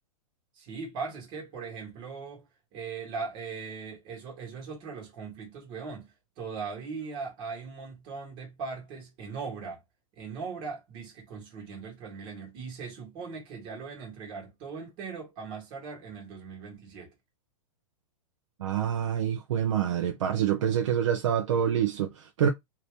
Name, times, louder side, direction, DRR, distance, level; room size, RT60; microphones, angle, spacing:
voice 1, 0.5-2.4 2.7-9.8 10.1-17.1, right 5 dB, 25° right, 1.6 m, -39 dB
voice 2, 18.6-22.5, right 9 dB, 55° right, 0.6 m, -26 dB
2.8 x 2.8 x 3.4 m
hypercardioid pair, 170°, 18 cm